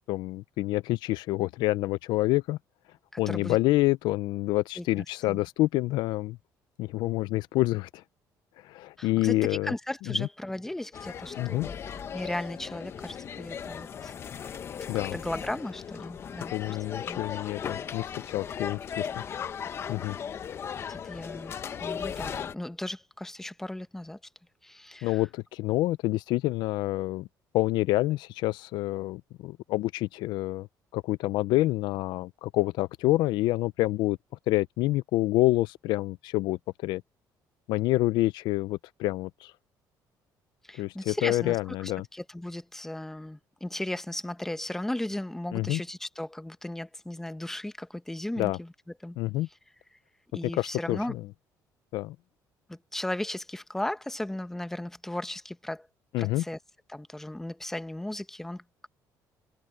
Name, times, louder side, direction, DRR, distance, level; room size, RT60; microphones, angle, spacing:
voice 1, 0.1-2.6 3.2-6.4 6.8-8.0 8.6-9.7 10.1-10.3 11.4-11.7 14.9-15.2 16.5-19.1 19.9-20.2 25.0-27.3 27.5-30.7 30.9-34.2 34.5-37.0 37.7-39.5 40.8-42.0 45.5-45.8 48.4-48.6 49.2-49.5 50.5-51.3 51.9-52.2 56.1-56.4, left 18 dB, 90° left, 0.4 m, -27 dB
voice 2, 3.1-3.6 4.8-5.4 9.0-11.7 12.1-14.1 15.1-16.8 17.1-17.2 20.9-21.5 21.8-24.2 24.6-25.2 40.7-48.7 49.0-49.2 50.3-51.2 52.7-55.9 56.2-56.6 56.9-58.9, left 1 dB, 5° left, 0.9 m, -36 dB
sound 1, 10.9-22.5, left 7 dB, 35° left, 0.8 m, -37 dB
cardioid pair, 160°, 7 cm